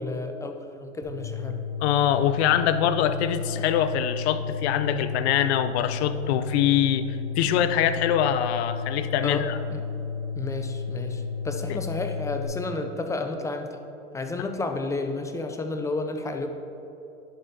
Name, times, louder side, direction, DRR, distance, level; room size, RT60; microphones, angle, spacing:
voice 1, 0.0-1.6 9.2-9.4 9.7-9.8 10.4-13.8 14.1-16.5, left 3 dB, 10° left, 5 dB, 0.3 m, -31 dB
sound 1, 1.0-12.4, left 6 dB, 80° right, 1.3 m, -32 dB
voice 2, 1.8-7.0 7.4-9.6 11.7-11.8 14.4-14.5, left 10 dB, 65° left, 12 dB, 0.6 m, -24 dB
11.0 x 7.8 x 2.7 m, 2.9 s
hypercardioid pair, 110°, 36 cm